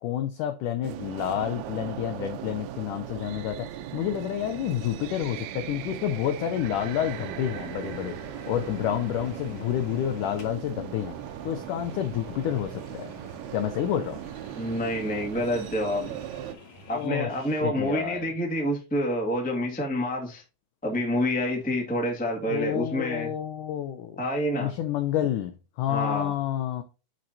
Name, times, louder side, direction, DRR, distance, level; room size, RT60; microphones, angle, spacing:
voice 1, 0.0-8.2 8.5-11.2 11.4-13.1 13.5-14.2 16.9-18.3 22.5-24.2 24.6-26.8, left 11 dB, 85° left, 1.8 m, -29 dB
sound 1, 0.8-16.6, right 11 dB, 85° right, 2.6 m, -38 dB
sound 2, 6.7-17.1, left 1 dB, 45° left, 2.7 m, -48 dB
voice 2, 14.6-16.1 16.9-20.4 20.8-23.3 24.2-24.7 25.9-26.3, equal, 10° left, 0.4 m, -28 dB
10.5 x 4.4 x 2.7 m
omnidirectional pair, 4.5 m